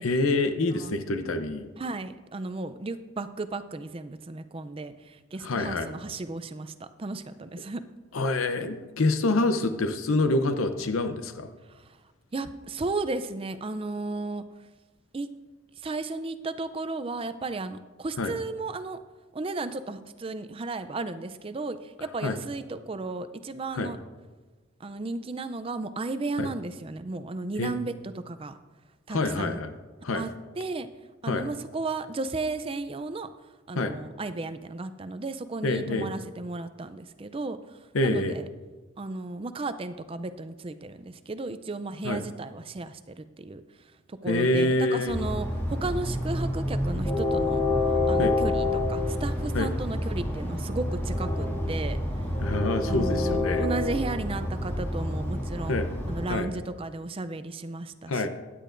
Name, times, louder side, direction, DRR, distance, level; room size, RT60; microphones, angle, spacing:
voice 1, 0.0-1.7 5.4-5.9 8.1-11.5 18.2-18.3 22.2-22.4 23.7-23.9 26.4-26.5 27.6-27.7 29.1-29.7 30.0-30.2 31.3-31.4 33.7-33.9 35.6-36.1 37.9-38.4 42.0-42.2 44.3-45.2 48.2-48.3 49.5-49.7 52.4-53.7 55.7-55.9 56.3-56.5 58.1-58.3, left 2 dB, 85° left, 8 dB, 0.7 m, -26 dB
voice 2, 1.8-7.8 12.3-14.4 15.1-15.3 15.8-19.0 19.3-24.0 24.8-27.9 28.3-28.6 29.1-29.6 30.1-30.9 31.2-33.3 33.7-37.6 38.0-38.5 39.0-43.6 44.1-47.6 48.1-52.0 52.9-55.8 56.1-58.3, right 3 dB, 25° right, 11 dB, 0.4 m, -34 dB
Train, 45.1-56.3, left 2 dB, 10° left, 2.2 m, -28 dB
15.5 x 10.0 x 2.6 m, 1.3 s
head